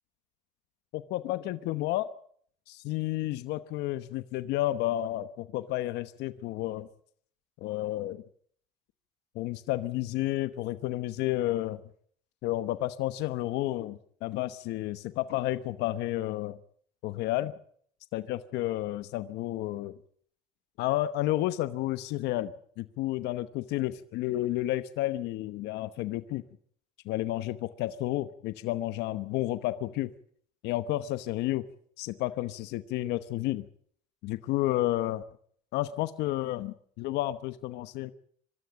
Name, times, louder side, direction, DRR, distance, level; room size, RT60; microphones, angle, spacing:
voice 1, 0.9-2.1 2.7-6.9 7.6-8.2 9.3-11.8 12.4-16.6 17.0-17.5 18.1-19.9 20.8-26.4 27.0-30.1 30.6-31.6 32.0-33.7 34.2-35.2 35.7-38.1, left 15 dB, 80° left, 12 dB, 1.0 m, -31 dB
24.5 x 13.0 x 9.9 m, 0.62 s
cardioid pair, 105°, 17 cm